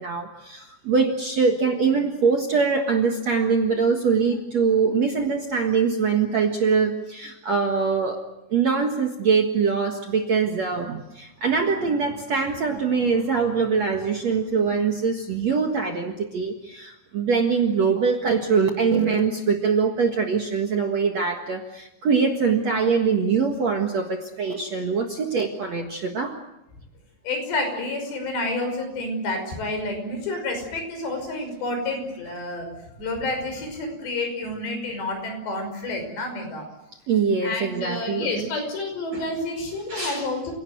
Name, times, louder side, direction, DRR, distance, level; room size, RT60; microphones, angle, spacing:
voice 1, 0.0-8.2 8.5-26.4 37.1-38.5 39.1-39.2 39.9-40.3, right 5 dB, 55° right, 3 dB, 2.0 m, -23 dB
voice 2, 27.2-32.7 33.0-36.7 37.4-40.5, left 2 dB, 70° left, 5 dB, 7.9 m, -29 dB
29.0 x 18.0 x 9.2 m, 0.88 s
omnidirectional pair, 5.1 m